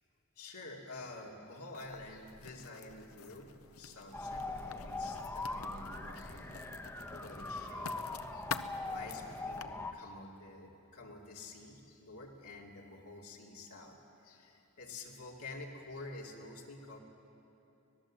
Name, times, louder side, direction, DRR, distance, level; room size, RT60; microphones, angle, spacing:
voice 1, 0.4-6.6 7.1-7.9 8.3-8.5 8.9-14.0 14.2-17.0, left 2 dB, 85° left, -2 dB, 2.8 m, -49 dB
Writing, 1.7-9.6, left 6 dB, 65° left, 0.8 m, -48 dB
sound 1, 4.1-9.9, left 2 dB, 10° left, 1.0 m, -41 dB
25.5 x 19.0 x 7.5 m, 2.9 s
head